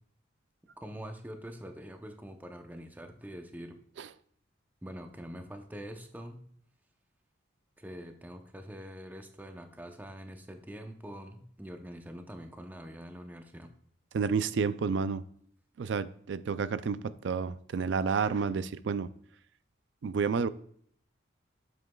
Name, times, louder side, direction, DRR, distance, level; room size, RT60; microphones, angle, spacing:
voice 1, 0.8-3.8 4.8-6.4 7.8-13.7, equal, 10° right, 5 dB, 0.6 m, -44 dB
voice 2, 14.1-15.2 15.8-19.1 20.0-20.5, right 5 dB, 65° right, 15 dB, 0.4 m, -30 dB
7.8 x 7.5 x 2.3 m, 0.64 s
head